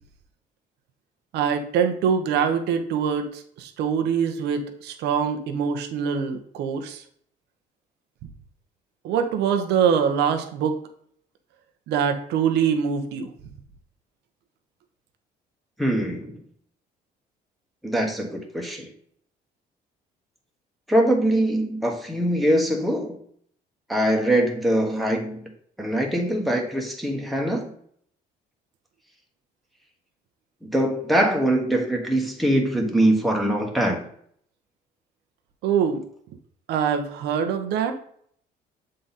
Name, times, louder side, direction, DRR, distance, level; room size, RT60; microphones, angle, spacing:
voice 1, 1.3-7.0 9.0-10.8 11.9-13.3 35.6-36.0 36.7-37.9, right 7 dB, 80° right, 6 dB, 0.9 m, -24 dB
voice 2, 15.8-16.4 17.8-18.9 20.9-23.2 23.9-25.5 25.8-27.7 30.6-34.0, right 1 dB, ahead, 0 dB, 1.3 m, -23 dB
7.6 x 3.9 x 4.1 m, 0.62 s
cardioid pair, 110°, 17 cm